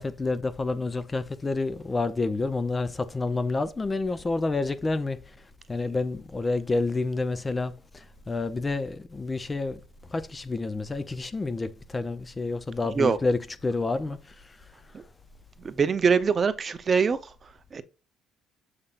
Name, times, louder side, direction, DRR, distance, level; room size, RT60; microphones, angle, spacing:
voice 1, 0.0-14.7, left 3 dB, 20° left, 0.5 m, -29 dB
voice 2, 15.6-17.2 17.7-17.8, right 5 dB, 30° right, 0.6 m, -23 dB
7.9 x 5.4 x 2.4 m
cardioid pair, 130°, 0 cm